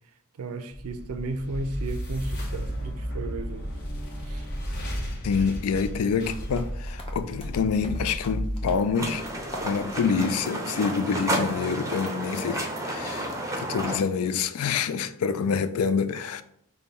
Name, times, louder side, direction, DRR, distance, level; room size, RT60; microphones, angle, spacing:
voice 1, 0.4-3.7 4.2-4.4, right 2 dB, 80° right, 0.5 m, -34 dB
sound 1, 0.7-9.9, equal, 50° left, 1.0 m, -33 dB
voice 2, 5.2-9.3 9.6-16.4, left 6 dB, 80° left, 0.4 m, -27 dB
sound 2, 6.3-12.2 12.5-12.8 13.1-13.2 13.6-13.7 14.2-14.5, left 1 dB, 25° left, 0.7 m, -46 dB
sound 3, 8.9-14.0, right 1 dB, 15° right, 0.6 m, -31 dB
5.4 x 2.2 x 4.0 m
head